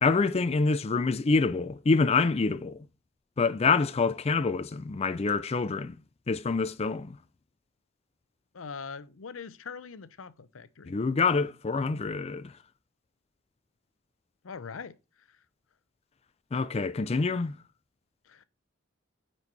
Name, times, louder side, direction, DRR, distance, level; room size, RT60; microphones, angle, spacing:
voice 1, 0.0-2.9 3.4-6.0 6.3-7.2 10.9-12.5 16.5-17.5, left 4 dB, 30° left, 0.4 m, -26 dB
voice 2, 8.5-10.9 14.4-15.4 18.3-18.4, left 5 dB, 80° left, 0.6 m, -42 dB
9.7 x 4.5 x 4.0 m
head